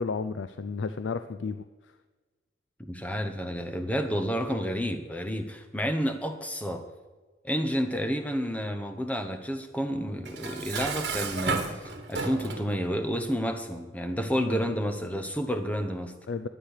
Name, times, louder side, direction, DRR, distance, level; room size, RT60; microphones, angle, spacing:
voice 1, 0.0-1.6 14.4-14.6 16.3-16.5, left 4 dB, 80° left, 12 dB, 0.5 m, -32 dB
voice 2, 2.8-6.8 7.4-16.1, equal, 10° left, 7 dB, 0.9 m, -30 dB
Dishes pots and pans, 10.3-12.7, right 4 dB, 60° right, 1.6 m, -32 dB
12.0 x 9.8 x 6.6 m, 1.3 s
head